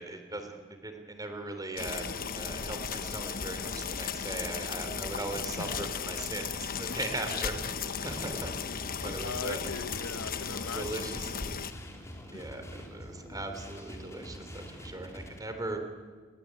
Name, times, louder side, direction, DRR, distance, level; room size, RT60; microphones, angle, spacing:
voice 1, 0.0-8.6 9.0-9.7 10.7-11.3 12.3-15.9, right 2 dB, 15° right, 6 dB, 3.5 m, -39 dB
sound 1, 1.8-11.7, left 6 dB, 45° left, 1.2 m, -36 dB
voice 2, 5.6-5.9 6.9-7.0 9.2-10.9 11.7-11.9 12.3-12.5, left 4 dB, 75° left, 14 dB, 0.9 m, -39 dB
sound 2, 8.0-15.4, equal, 15° left, 3.6 m, -45 dB
27.5 x 21.5 x 9.6 m, 1.5 s
head